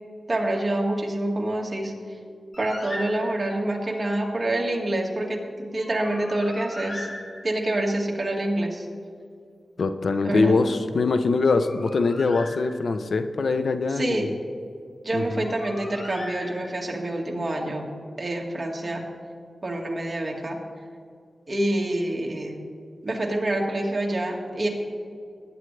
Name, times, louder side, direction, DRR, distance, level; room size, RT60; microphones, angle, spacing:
voice 1, 0.3-1.9 2.6-7.1 7.4-8.9 10.2-10.6 13.9-14.3 15.0-17.9 18.2-19.0 19.6-20.6 21.5-22.6 23.0-24.7, right 1 dB, 35° right, 0 dB, 1.9 m, -27 dB
Bird, 2.5-3.7 5.8-7.8 11.3-13.1 15.1-17.0, left 1 dB, 50° left, 1.9 m, -40 dB
voice 2, 9.8-14.3 15.1-15.5, left 3 dB, 75° left, 9 dB, 0.6 m, -23 dB
18.5 x 9.5 x 3.3 m, 2.2 s
wide cardioid pair, 105°, 0 cm